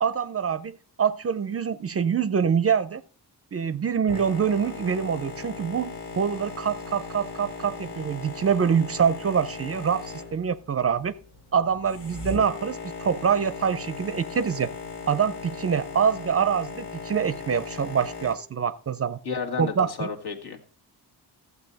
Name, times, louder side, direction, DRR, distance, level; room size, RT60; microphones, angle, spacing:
voice 1, 0.0-3.0 3.5-11.1 11.5-14.7 15.1-19.2 19.6-20.1, right 7 dB, 35° right, 15 dB, 0.4 m, -25 dB
Boat Water vehicle, 4.1-18.4, left 4 dB, 85° left, 3.0 m, -38 dB
voice 2, 19.2-20.7, left 5 dB, 65° left, 3 dB, 1.7 m, -32 dB
14.0 x 8.1 x 4.0 m, 0.42 s
wide cardioid pair, 155°, 40 cm